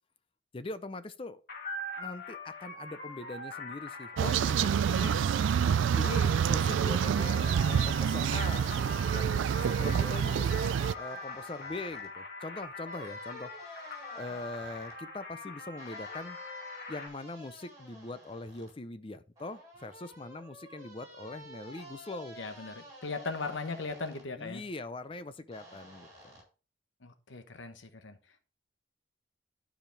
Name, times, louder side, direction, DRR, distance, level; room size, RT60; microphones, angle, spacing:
voice 1, 0.5-1.4 2.0-5.2 6.0-8.8 9.1-10.6 11.0-13.5 14.0-16.4 16.9-22.4 24.4-26.4, left 2 dB, 30° left, 0.5 m, -42 dB
sound 1, 1.5-17.1, left 3 dB, 55° left, 2.1 m, -43 dB
sound 2, 4.2-10.9, right 8 dB, 90° right, 0.3 m, -27 dB
sound 3, 9.6-12.1 12.8-15.0 15.8-18.7 19.4-24.2 25.5-26.4, equal, 20° right, 4.5 m, -51 dB
voice 2, 22.4-24.6 27.0-28.2, left 3 dB, 90° left, 1.1 m, -38 dB
11.5 x 5.0 x 3.3 m
head